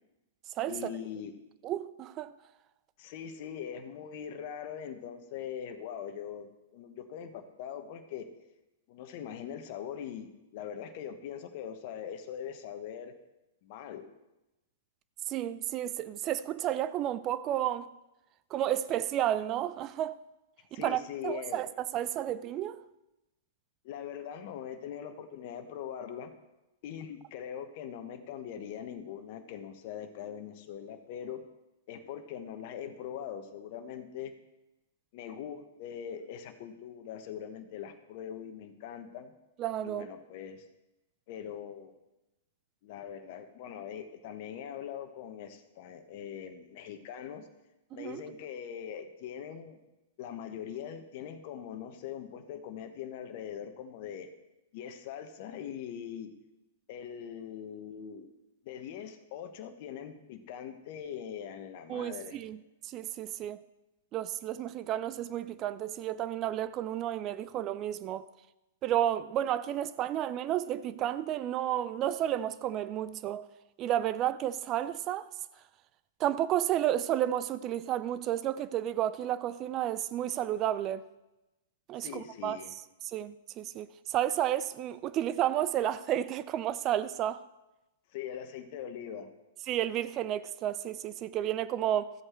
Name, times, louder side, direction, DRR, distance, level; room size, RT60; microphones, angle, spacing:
voice 1, 0.7-1.3 3.0-8.3 8.9-13.2 13.6-14.1 20.7-21.6 23.8-26.3 26.8-31.4 31.9-34.3 35.1-39.3 39.8-40.7 41.3-42.0 42.8-47.5 47.9-49.8 50.2-54.3 54.7-56.3 56.9-58.3 58.6-62.4 82.0-82.7 88.1-89.3, left 8 dB, 50° left, 1.2 m, -42 dB
voice 2, 1.6-2.3 15.3-17.9 18.5-20.2 20.8-21.7 21.9-22.8 39.6-40.1 47.9-48.2 61.9-62.6 62.8-63.6 64.1-68.3 68.8-73.5 73.8-75.3 76.2-81.0 81.9-82.6 83.1-87.4 89.7-92.1, right 11 dB, 30° right, 0.5 m, -31 dB
14.0 x 7.9 x 4.5 m
figure-of-eight pair, 110°, 0 cm